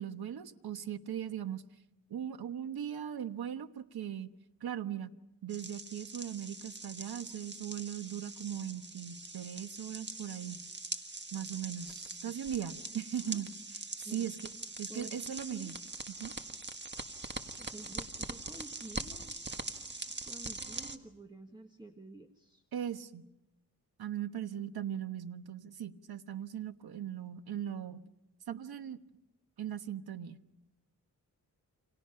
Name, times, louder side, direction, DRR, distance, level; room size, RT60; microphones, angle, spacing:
voice 1, 0.0-1.6 2.1-4.3 4.6-5.1 5.4-10.6 11.3-13.5 14.0-14.3 14.8-15.7 16.1-16.3 22.7-23.3 24.0-28.0 28.5-29.0 29.6-30.4, right 9 dB, 85° right, 10 dB, 1.2 m, -39 dB
sound 1, 5.5-21.0, right 3 dB, 30° right, 1.6 m, -43 dB
voice 2, 14.9-15.7 17.6-19.4 19.7-22.6, right 2 dB, 10° right, 6 dB, 1.5 m, -51 dB
29.0 x 27.0 x 5.7 m, 0.90 s
cardioid pair, 80°, 36 cm